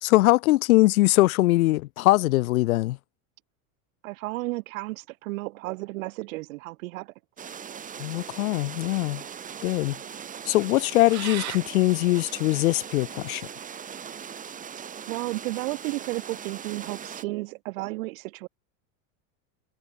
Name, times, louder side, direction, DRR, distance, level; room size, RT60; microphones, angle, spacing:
voice 1, 0.0-3.0 8.0-9.2 9.6-10.0 10.5-13.5, left 18 dB, 80° left, 2.4 m, -22 dB
voice 2, 4.0-7.1 15.1-18.5, right 21 dB, 70° right, 4.7 m, -33 dB
sound 1, 7.4-17.2, right 7 dB, 20° right, 1.9 m, -40 dB
sound 2, 7.7-13.5, right 17 dB, 40° right, 4.0 m, -42 dB
supercardioid pair, 145°, 42 cm